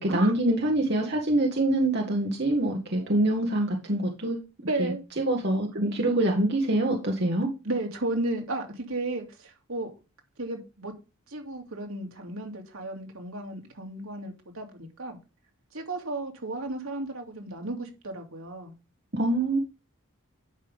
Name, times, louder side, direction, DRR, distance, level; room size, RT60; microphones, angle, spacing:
voice 1, 0.0-4.4 4.8-7.5 19.1-19.6, right 1 dB, 50° right, 1.5 m, -25 dB
voice 2, 4.7-5.0 7.6-9.9 10.4-10.9 11.3-15.2 15.7-18.7, right 2 dB, 75° right, 2.4 m, -34 dB
11.0 x 5.4 x 3.5 m
head